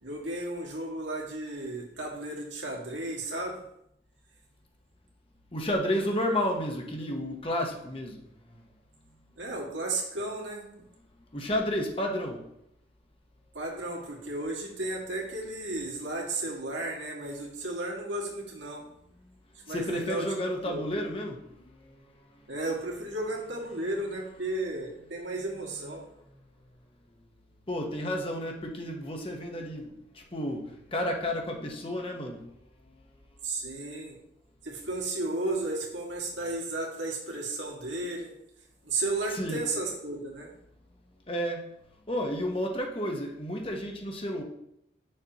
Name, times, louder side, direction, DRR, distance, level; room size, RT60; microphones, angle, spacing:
voice 1, 0.0-3.6 9.4-10.8 13.5-18.8 19.7-20.3 20.6-20.9 22.5-26.0 33.4-34.1 34.6-38.3 38.8-40.5, right 2 dB, 85° right, -1 dB, 1.9 m, -34 dB
voice 2, 5.5-8.6 11.3-12.5 18.8-19.3 19.6-22.5 25.7-26.1 27.7-32.5 32.8-33.0 39.3-39.7 41.3-41.7 42.1-44.4, equal, 30° left, 1 dB, 1.1 m, -32 dB
8.9 x 6.5 x 3.0 m, 0.77 s
head